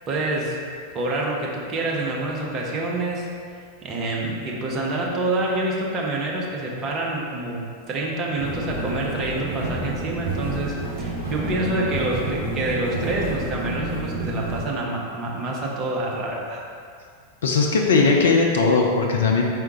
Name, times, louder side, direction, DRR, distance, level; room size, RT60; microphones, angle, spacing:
voice 1, 0.1-0.6 0.9-3.3 3.8-16.6, right 2 dB, 30° right, -2 dB, 0.7 m, -27 dB
sound 1, 8.4-14.6, right 2 dB, 55° right, 1.1 m, -29 dB
voice 2, 17.4-19.4, left 4 dB, 65° left, 0 dB, 0.4 m, -18 dB
4.6 x 3.6 x 2.9 m, 2.1 s
figure-of-eight pair, 90°, 0 cm